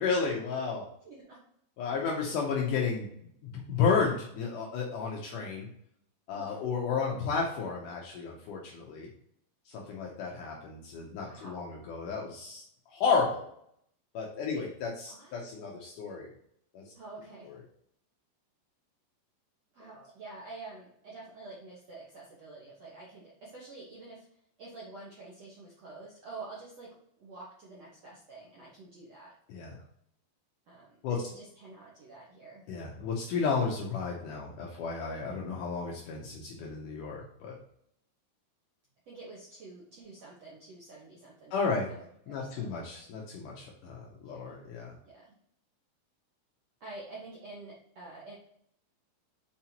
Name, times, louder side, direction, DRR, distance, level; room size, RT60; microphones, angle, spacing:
voice 1, 0.0-0.9 1.8-3.1 3.7-5.7 6.3-9.1 9.7-12.6 12.9-13.5 14.1-16.3 16.7-16.9 17.4-17.6 29.5-29.7 31.0-31.3 32.7-37.6 41.5-41.9 42.3-44.9, left 5 dB, 90° left, -1 dB, 1.8 m, -32 dB
voice 2, 1.1-1.4 2.3-2.4 6.3-6.6 11.2-11.7 14.4-14.6 15.1-15.4 16.9-17.5 19.7-24.3 24.6-26.9 27.2-29.3 30.7-32.6 39.1-42.7 44.2-44.6 45.0-45.3 46.8-48.4, right 3 dB, 65° right, -6 dB, 1.6 m, -48 dB
7.2 x 4.8 x 2.9 m, 0.69 s
omnidirectional pair, 4.9 m